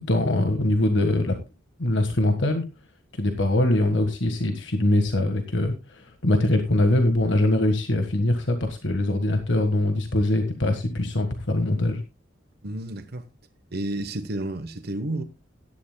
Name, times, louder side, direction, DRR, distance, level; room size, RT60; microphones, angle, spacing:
voice 1, 0.1-1.4 1.8-2.6 3.1-12.0, left 1 dB, 70° left, 1.5 m, -23 dB
voice 2, 12.6-13.2 13.7-15.2, right 1 dB, 55° right, 0.9 m, -31 dB
16.5 x 11.5 x 2.2 m
head